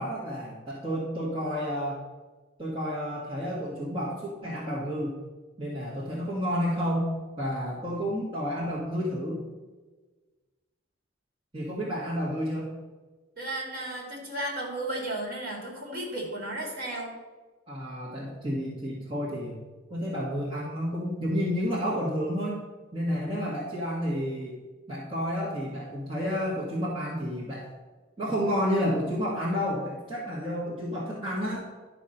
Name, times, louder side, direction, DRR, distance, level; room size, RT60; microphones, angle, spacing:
voice 1, 0.0-2.0 2.6-5.1 5.6-7.1 7.4-9.4 11.5-12.7 17.7-19.6 19.9-22.6 22.9-24.6 24.9-27.7 28.2-31.6, equal, 25° right, -7 dB, 1.7 m, -30 dB
voice 2, 13.4-17.1, right 1 dB, 45° right, -1 dB, 2.7 m, -34 dB
11.5 x 4.3 x 6.6 m, 1.3 s
head